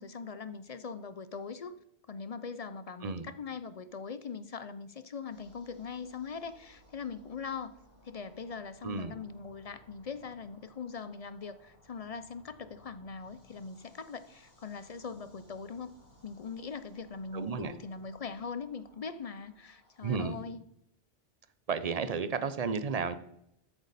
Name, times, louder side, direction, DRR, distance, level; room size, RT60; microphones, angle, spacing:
voice 1, 0.0-1.7 2.1-7.7 8.0-15.9 16.2-20.6, left 5 dB, 45° left, 13 dB, 0.5 m, -41 dB
sound 1, 5.3-20.4, equal, 60° left, 2.6 m, -62 dB
voice 2, 8.8-9.1 17.3-17.7 20.0-20.4 21.7-23.2, right 5 dB, 40° right, 12 dB, 0.7 m, -32 dB
13.5 x 8.1 x 4.1 m, 0.76 s
omnidirectional pair, 1.1 m